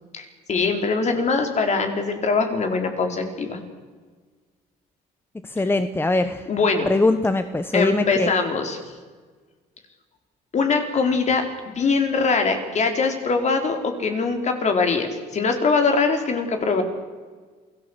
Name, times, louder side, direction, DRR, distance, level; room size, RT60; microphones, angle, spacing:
voice 1, 0.1-3.6 6.5-6.9 7.7-8.8 10.5-16.8, left 4 dB, 45° left, 5 dB, 4.5 m, -22 dB
voice 2, 5.4-6.4 6.9-8.3, left 2 dB, 15° left, 10 dB, 1.2 m, -22 dB
28.0 x 18.0 x 8.2 m, 1.5 s
cardioid pair, 110°, 17 cm